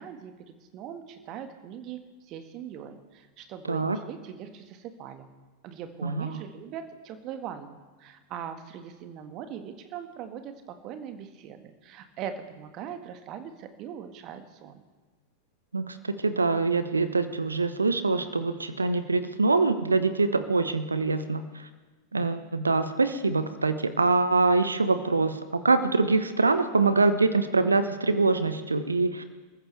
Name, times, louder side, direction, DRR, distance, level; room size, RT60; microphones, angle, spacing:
voice 1, 0.0-2.0 2.3-5.3 5.6-14.8, right 8 dB, 40° right, 8 dB, 1.7 m, -41 dB
voice 2, 3.7-4.0 6.0-6.4 15.7-21.4 22.1-29.2, right 3 dB, 80° right, 11 dB, 1.1 m, -24 dB
29.0 x 14.5 x 3.4 m, 1.3 s
figure-of-eight pair, 90°, 0 cm